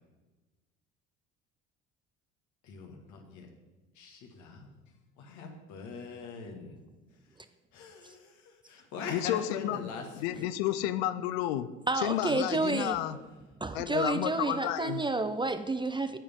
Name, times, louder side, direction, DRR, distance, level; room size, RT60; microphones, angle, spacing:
voice 1, 2.6-3.5 3.9-4.7 5.2-6.8 7.7-10.5, left 5 dB, 70° left, 1.7 m, -42 dB
voice 2, 9.1-9.9 10.2-11.7 12.0-13.2 13.7-15.0, left 13 dB, 85° left, 0.5 m, -31 dB
voice 3, 11.9-13.0 13.6-16.2, right 3 dB, 15° right, 0.4 m, -30 dB
9.9 x 7.0 x 3.6 m
supercardioid pair, 75°, 30 cm